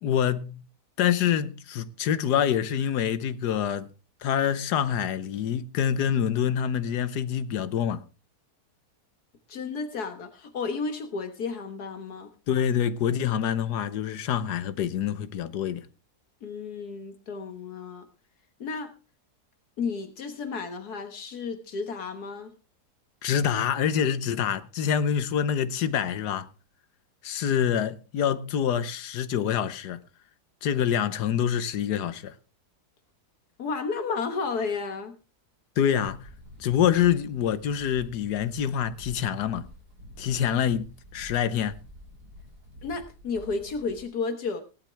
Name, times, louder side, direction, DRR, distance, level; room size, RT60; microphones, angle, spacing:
voice 1, 0.0-0.6 1.0-3.9 4.2-8.0 12.5-15.9 23.2-26.5 27.2-30.0 30.6-32.4 35.8-36.3 36.6-39.7 40.2-41.8, left 9 dB, 90° left, 1.4 m, -26 dB
voice 2, 9.5-12.3 16.4-18.0 18.6-18.9 19.8-22.5 33.6-35.2 42.8-44.6, left 4 dB, 75° left, 1.8 m, -32 dB
sound 1, 36.0-44.1, left 1 dB, 70° right, 4.7 m, -48 dB
17.5 x 11.0 x 3.3 m
omnidirectional pair, 1.7 m